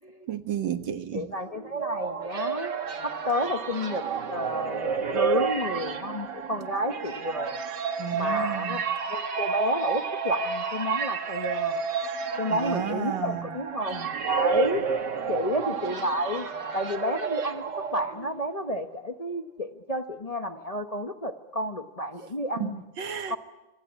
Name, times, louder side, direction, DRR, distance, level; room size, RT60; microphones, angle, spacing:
voice 1, 0.3-1.3 8.0-8.8 12.5-13.5 22.6-23.4, right 9 dB, 85° right, 9 dB, 2.1 m, -32 dB
voice 2, 1.1-2.7 3.0-7.6 8.1-8.8 9.1-11.8 12.4-14.9 15.3-16.5 16.7-17.6 17.9-22.8 23.3-23.4, equal, 25° left, 6 dB, 1.0 m, -31 dB
sound 1, 1.5-18.5, right 6 dB, 70° right, 2.2 m, -30 dB
26.0 x 24.5 x 8.3 m, 1.0 s
omnidirectional pair, 1.9 m